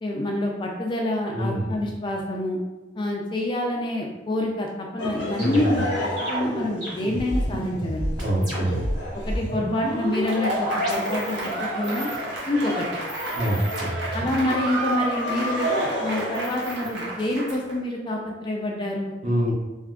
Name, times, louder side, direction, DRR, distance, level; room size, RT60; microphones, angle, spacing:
voice 1, 0.0-2.6 3.0-8.1 9.2-12.1 12.5-12.8 14.1-15.7 16.0-19.1, left 1 dB, 25° left, -1 dB, 0.3 m, -27 dB
voice 2, 1.3-1.7 5.4-5.8 8.2-8.8 13.3-13.6 19.2-19.5, equal, 40° right, -5 dB, 0.7 m, -25 dB
Laughter, 5.0-14.0 14.9-17.3, equal, 75° left, 0.7 m, -32 dB
sound 1, 5.0-11.5 11.8-12.5 12.9-15.7 16.3-17.5, equal, 20° right, 1.1 m, -31 dB
Applause / Crowd, 9.6-17.8, right 1 dB, 75° right, 0.6 m, -33 dB
3.5 x 2.4 x 2.3 m, 1.1 s
head